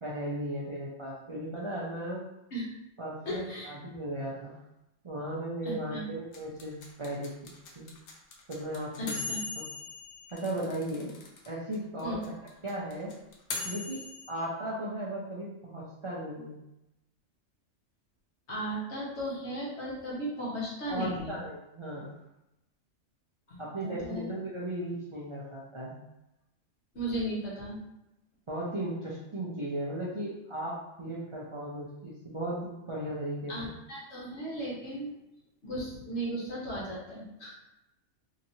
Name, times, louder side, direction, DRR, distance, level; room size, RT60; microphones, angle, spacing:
voice 1, 0.0-2.2 3.0-4.6 5.0-7.3 7.8-7.9 8.5-9.2 10.3-11.1 11.5-12.4 12.6-13.1 13.6-14.0 14.3-16.6 20.9-22.1 23.6-25.9 28.5-33.7, right 1 dB, 45° right, -6 dB, 0.4 m, -36 dB
voice 2, 3.2-3.7 5.6-6.1 9.0-9.4 12.0-12.2 18.5-21.4 23.5-24.3 26.9-27.8 33.5-35.2 35.6-37.6, right 1 dB, 65° left, -5 dB, 1.3 m, -36 dB
sound 1, 6.3-11.5 11.7-11.8 12.0-14.3, left 4 dB, 85° left, 1.0 m, -39 dB
2.9 x 2.8 x 2.7 m, 0.89 s
omnidirectional pair, 1.3 m